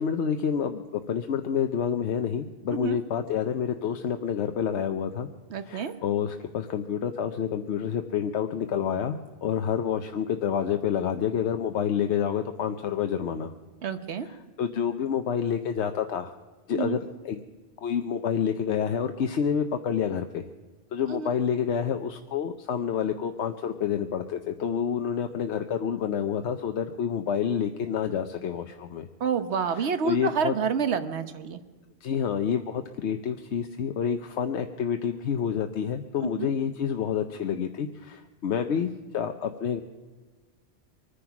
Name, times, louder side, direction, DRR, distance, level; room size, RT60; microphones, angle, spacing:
voice 1, 0.0-5.3 5.7-13.5 14.6-16.3 16.7-17.0 17.2-17.4 17.8-20.4 20.9-29.1 29.7-30.5 32.0-39.8, left 8 dB, 85° left, 7 dB, 1.0 m, -28 dB
voice 2, 5.5-5.9 13.8-14.3 16.7-17.0 21.1-21.3 29.2-31.6 36.4-36.5, right 6 dB, 80° right, 10 dB, 1.3 m, -28 dB
24.0 x 10.0 x 5.9 m, 1.3 s
omnidirectional pair, 1.1 m